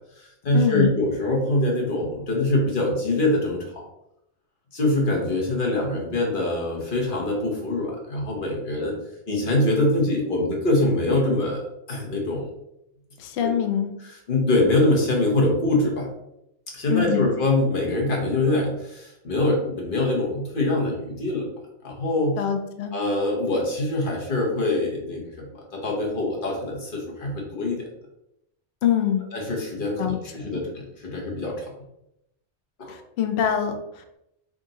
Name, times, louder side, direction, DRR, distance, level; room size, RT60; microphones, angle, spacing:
voice 1, 0.0-3.8 4.7-9.0 9.3-12.5 13.4-13.6 14.0-16.1 16.7-21.5 21.8-22.4 22.9-27.8 29.3-31.7 32.8-33.0, left 2 dB, 50° left, -2 dB, 1.2 m, -24 dB
voice 2, 0.5-0.9 13.2-13.9 16.9-17.3 22.4-22.9 28.8-29.2 30.0-30.2 30.4-30.5 32.9-34.2, left 9 dB, 70° left, 6 dB, 0.8 m, -24 dB
3.7 x 2.7 x 3.9 m, 0.82 s
omnidirectional pair, 1.2 m